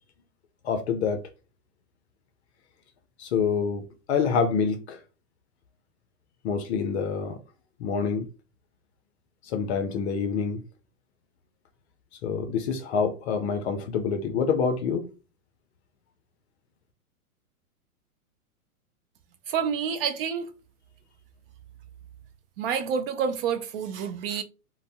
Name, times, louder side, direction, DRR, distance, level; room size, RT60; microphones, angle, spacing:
voice 1, 0.6-1.3 3.2-5.0 6.4-7.4 7.8-8.3 9.4-10.6 12.2-15.1, left 6 dB, 50° left, 0.5 m, -27 dB
voice 2, 19.5-20.5 22.6-24.4, right 7 dB, 40° right, 0.4 m, -28 dB
2.5 x 2.1 x 3.3 m
hypercardioid pair, 120°, 45 cm